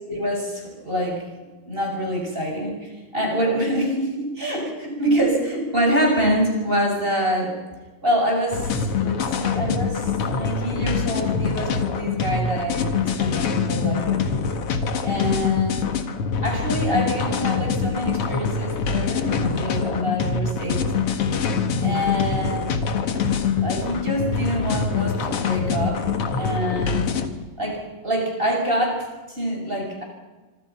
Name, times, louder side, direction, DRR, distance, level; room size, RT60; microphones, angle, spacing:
voice 1, 0.1-1.2 1.7-7.5 8.0-14.2 15.0-15.8 16.4-20.8 21.8-22.7 23.6-26.0 26.4-27.1 27.6-30.0, equal, 15° right, 0 dB, 7.3 m, -26 dB
sound 1, 8.5-27.3, left 5 dB, 50° left, 2.3 m, -24 dB
26.5 x 25.5 x 5.9 m, 1.2 s
omnidirectional pair, 3.8 m